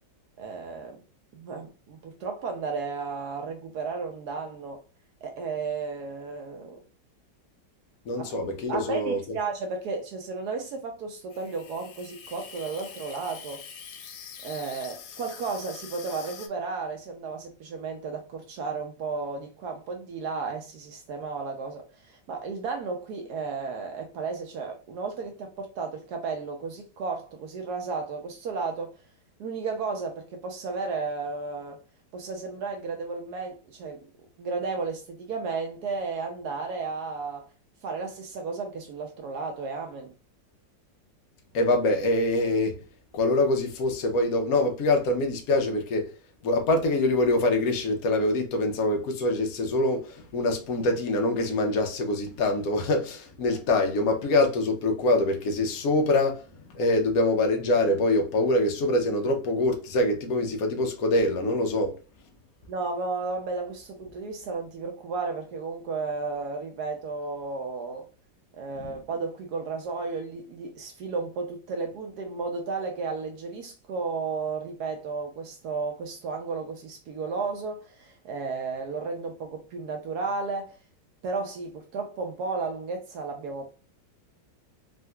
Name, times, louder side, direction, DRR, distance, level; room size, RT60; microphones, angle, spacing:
voice 1, 0.4-1.0 1.3-4.8 5.2-6.8 8.2-8.3 8.7-13.6 14.4-29.0 29.4-31.8 32.1-34.1 34.4-37.4 37.8-40.1 62.7-68.1 68.6-80.8 81.2-83.7, right 4 dB, 70° right, 1.0 m, -33 dB
voice 2, 8.1-9.2 41.5-42.8 43.1-46.1 46.4-56.4 56.7-62.0 68.8-68.9, left 2 dB, 65° left, 1.0 m, -24 dB
Water tap faucet / Sink (filling or washing), 11.3-16.5, left 7 dB, 85° left, 1.3 m, -44 dB
3.7 x 2.5 x 2.2 m
omnidirectional pair, 2.0 m